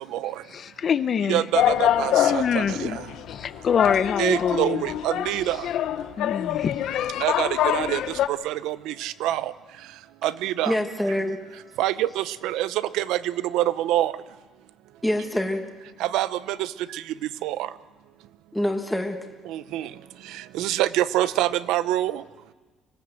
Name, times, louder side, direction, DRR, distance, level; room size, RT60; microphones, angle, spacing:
voice 1, 0.5-1.4 2.1-3.0 3.3-4.8 5.4-5.5 6.2-6.8, left 7 dB, 40° left, 13 dB, 0.8 m, -25 dB
voice 2, 1.3-3.0 4.2-5.7 7.2-8.0 8.3-9.5 10.2-10.7 11.8-14.1 16.0-17.0 17.4-17.7 19.5-19.9 20.5-22.2, right 14 dB, 85° right, 15 dB, 0.7 m, -26 dB
sound 1, 1.5-8.3, left 11 dB, 65° left, 0.8 m, -25 dB
voice 3, 10.6-11.4 15.0-15.6 18.5-19.2, left 1 dB, ahead, 3 dB, 1.5 m, -25 dB
25.0 x 17.5 x 7.8 m, 1.3 s
cardioid pair, 145°, 0 cm